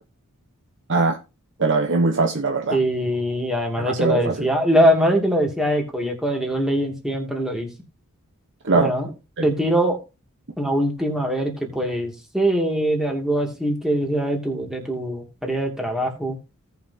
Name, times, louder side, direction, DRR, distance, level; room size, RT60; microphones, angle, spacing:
voice 1, 1.6-2.8 3.8-4.5 8.6-8.9 9.4-9.5, right 3 dB, 55° right, 1.1 m, -21 dB
voice 2, 2.7-7.7 8.7-9.1 9.4-10.0 10.6-16.4, equal, ahead, 2.5 m, -22 dB
17.5 x 5.9 x 2.8 m
head